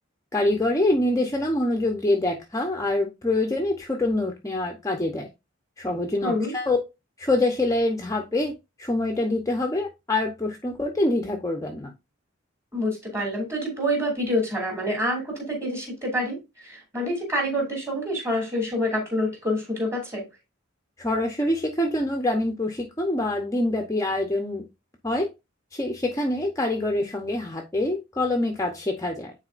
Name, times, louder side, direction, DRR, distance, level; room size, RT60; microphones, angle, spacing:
voice 1, 0.3-5.3 5.8-6.8 7.2-11.9 21.0-24.6 25.0-25.3 25.7-29.3, left 2 dB, 15° left, 0.9 m, -25 dB
voice 2, 6.2-6.5 12.7-20.2, equal, 15° right, 3.0 m, -27 dB
9.3 x 4.2 x 2.5 m
head